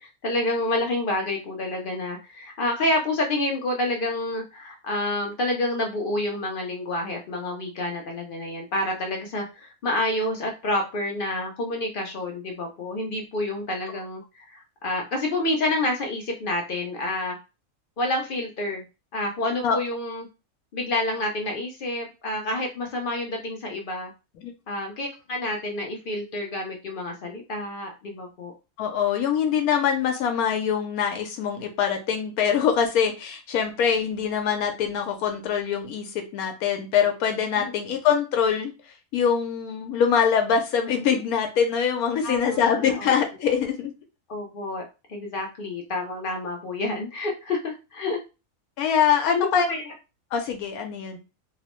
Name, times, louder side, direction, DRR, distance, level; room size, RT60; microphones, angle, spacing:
voice 1, 0.0-17.4 18.0-18.8 19.1-20.3 20.7-24.1 24.7-28.5 37.6-37.7 42.2-43.1 44.3-44.8 45.1-48.2 49.3-49.9, left 2 dB, 65° left, 2 dB, 0.5 m, -28 dB
voice 2, 28.8-38.7 39.1-43.9 48.8-49.7 50.3-51.2, left 7 dB, 90° left, 5 dB, 1.1 m, -24 dB
2.9 x 2.0 x 2.9 m, 0.29 s
omnidirectional pair, 1.5 m